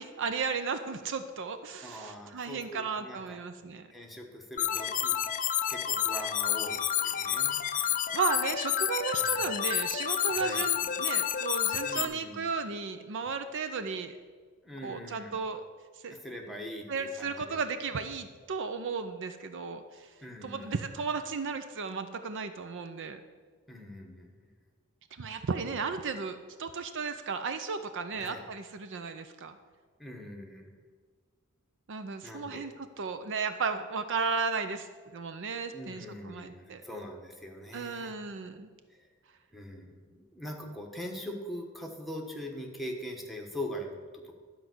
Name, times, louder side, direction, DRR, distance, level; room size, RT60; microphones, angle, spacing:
voice 1, 0.0-3.9 7.6-14.2 14.8-15.6 16.0-16.2 16.9-20.1 20.4-23.2 25.1-29.6 31.9-32.7 33.0-36.8 37.7-38.7, right 5 dB, 55° right, 9 dB, 0.5 m, -34 dB
voice 2, 1.8-3.4 3.9-5.2 5.7-7.6 9.2-9.5 10.3-10.6 11.8-12.5 14.6-15.4 16.1-17.6 20.2-20.7 23.7-24.5 28.1-28.4 30.0-30.7 32.2-32.7 35.7-38.1 38.9-39.1 39.5-44.3, equal, ahead, 0 dB, 1.3 m, -42 dB
sound 1, 4.6-12.1, left 10 dB, 35° left, 0.5 m, -30 dB
12.0 x 4.7 x 7.9 m, 1.5 s
head